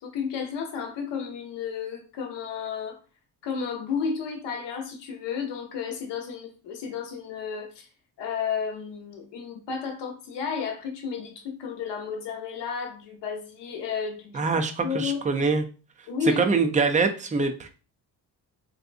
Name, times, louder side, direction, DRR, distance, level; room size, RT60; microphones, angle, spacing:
voice 1, 0.0-3.0 3.4-7.9 8.2-15.2 16.1-16.4, left 6 dB, 80° left, 0.8 m, -32 dB
voice 2, 14.3-15.6 16.4-17.7, right 4 dB, 20° right, 0.4 m, -24 dB
3.3 x 2.7 x 2.5 m
cardioid pair, 100°, 42 cm